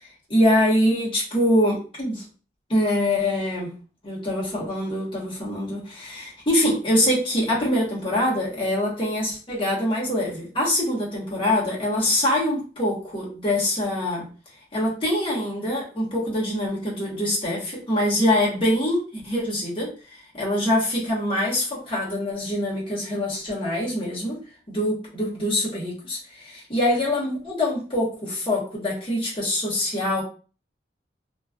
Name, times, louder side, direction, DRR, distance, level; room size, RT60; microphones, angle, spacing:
voice 1, 0.3-2.2 2.7-3.7 4.0-14.2 14.7-24.4 24.7-30.2, left 1 dB, 30° left, -5 dB, 1.1 m, -24 dB
3.0 x 2.3 x 2.3 m, 0.37 s
head